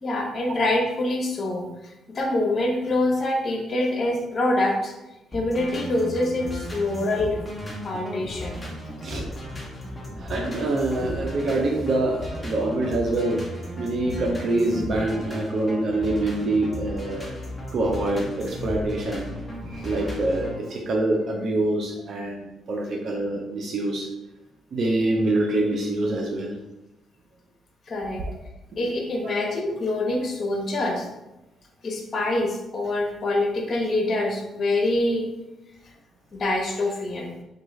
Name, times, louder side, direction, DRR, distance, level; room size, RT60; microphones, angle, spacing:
voice 1, 0.0-4.9 5.3-7.3 7.8-8.6 27.9-28.2 28.8-31.1 31.8-35.3 36.3-37.4, left 2 dB, 45° left, 1 dB, 0.8 m, -25 dB
sound 1, 5.3-20.6, equal, 15° left, 1.0 m, -35 dB
voice 2, 10.2-13.4 13.8-17.4 17.7-19.4 19.7-24.1 24.7-26.5 28.8-28.9 29.2-29.4, right 2 dB, 55° right, 0 dB, 0.5 m, -25 dB
3.6 x 2.3 x 3.1 m, 0.97 s
cardioid pair, 90°, 0 cm